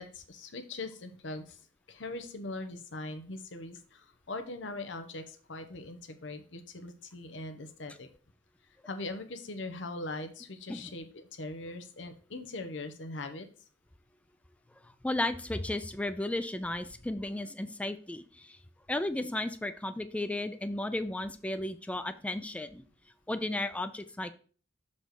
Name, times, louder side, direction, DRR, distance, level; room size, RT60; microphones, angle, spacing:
voice 1, 0.0-1.6 1.9-8.1 8.9-13.5, left 2 dB, 85° left, 8 dB, 0.8 m, -41 dB
voice 2, 14.8-18.6 18.9-22.8 23.3-24.3, left 1 dB, 5° left, 10 dB, 0.3 m, -34 dB
6.6 x 4.2 x 4.7 m, 0.41 s
head